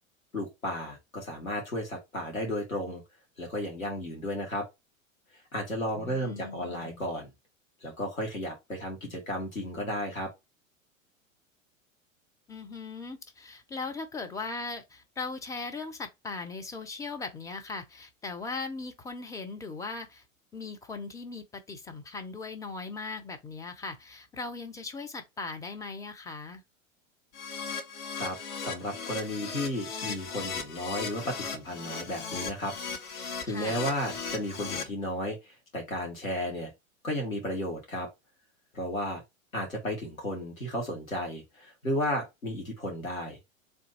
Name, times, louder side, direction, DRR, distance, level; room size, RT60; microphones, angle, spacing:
voice 1, 0.3-3.0 3.4-4.6 5.5-7.3 7.8-10.3 28.2-32.7 33.4-36.7 37.0-38.1 38.7-39.2 39.5-43.4, equal, 85° left, 1.9 m, -33 dB
voice 2, 6.0-7.1 12.5-20.2 20.5-26.6 33.4-33.8, left 3 dB, 10° left, 0.4 m, -39 dB
Keyboard (musical), 27.3-34.8, left 5 dB, 55° left, 2.3 m, -37 dB
3.5 x 2.7 x 3.9 m
figure-of-eight pair, 95°, 40 cm